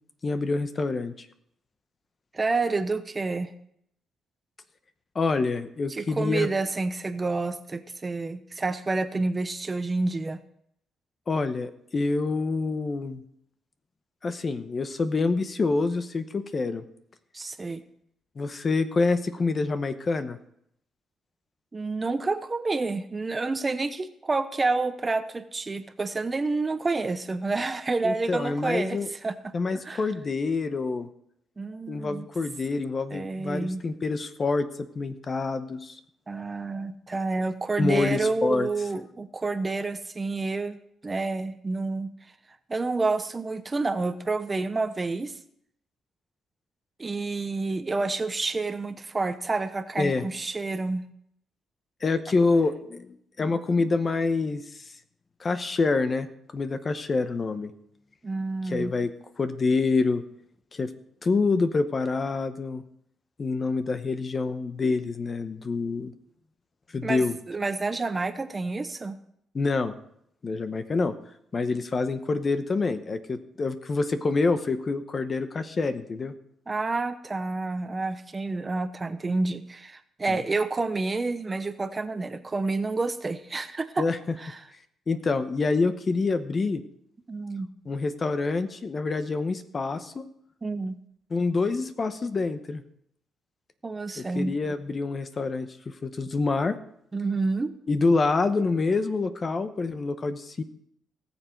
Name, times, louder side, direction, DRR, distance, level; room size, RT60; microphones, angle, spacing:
voice 1, 0.2-1.3 5.1-6.5 11.3-13.2 14.2-16.8 18.4-20.4 28.0-29.1 29.5-31.1 31.9-34.7 34.9-36.0 37.8-38.7 50.0-50.2 52.0-54.6 55.4-56.3 56.5-57.7 58.7-59.1 59.4-60.2 60.7-60.9 61.2-62.8 63.4-66.1 66.9-67.3 69.5-70.0 70.4-71.1 71.5-76.3 80.3-80.4 84.0-84.2 85.1-86.8 87.9-90.2 91.3-92.8 94.2-96.7 97.9-100.6, left 3 dB, 35° left, 10 dB, 1.0 m, -26 dB
voice 2, 2.3-3.5 5.9-10.4 17.3-17.8 21.7-29.5 29.8-30.0 31.6-32.3 33.1-33.8 36.3-42.1 42.7-45.4 47.0-51.0 58.2-58.9 67.0-69.2 76.7-84.1 84.4-84.6 87.3-87.7 90.6-91.0 93.8-94.6 97.1-97.7, right 3 dB, 25° right, 11 dB, 0.9 m, -29 dB
18.5 x 7.1 x 4.6 m, 0.72 s
cardioid pair, 90°, 0 cm